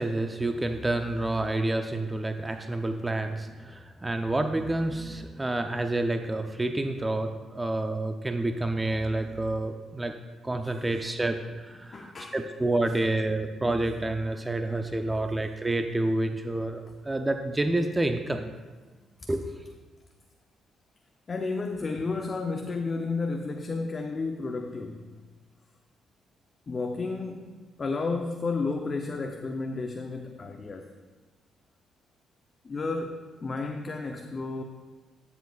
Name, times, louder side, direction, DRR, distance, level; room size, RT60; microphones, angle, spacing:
voice 1, 0.0-10.1 10.4-18.5 19.3-19.6, right 2 dB, 15° right, 6 dB, 0.5 m, -29 dB
voice 2, 10.5-11.2 11.5-12.5 12.9-13.0 14.8-15.1 16.9-17.0 19.0-19.4 21.3-25.1 26.7-27.5 27.8-30.9 32.6-34.6, left 3 dB, 35° left, 4 dB, 0.6 m, -33 dB
12.0 x 7.0 x 2.3 m, 1.3 s
cardioid pair, 90°, 0 cm